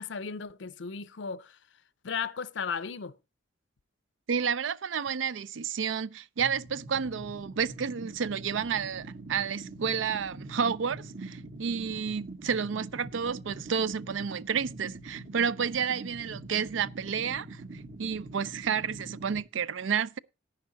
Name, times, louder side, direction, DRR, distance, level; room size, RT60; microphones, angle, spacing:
voice 1, 0.0-1.6 2.0-3.1, left 6 dB, 70° left, 0.6 m, -35 dB
voice 2, 4.3-17.6 18.0-20.2, right 7 dB, 85° right, 0.5 m, -31 dB
sound 1, 6.4-19.4, right 2 dB, 60° right, 1.3 m, -44 dB
11.0 x 10.0 x 3.9 m
head